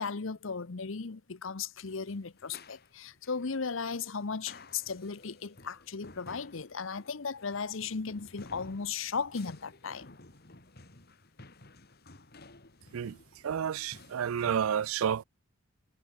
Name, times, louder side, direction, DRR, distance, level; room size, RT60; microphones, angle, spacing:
voice 1, 0.0-10.1, left 5 dB, 70° left, 0.8 m, -36 dB
sound 1, 1.9-14.7, left 2 dB, 50° left, 2.8 m, -54 dB
voice 2, 13.4-15.2, right 8 dB, 85° right, 0.4 m, -30 dB
head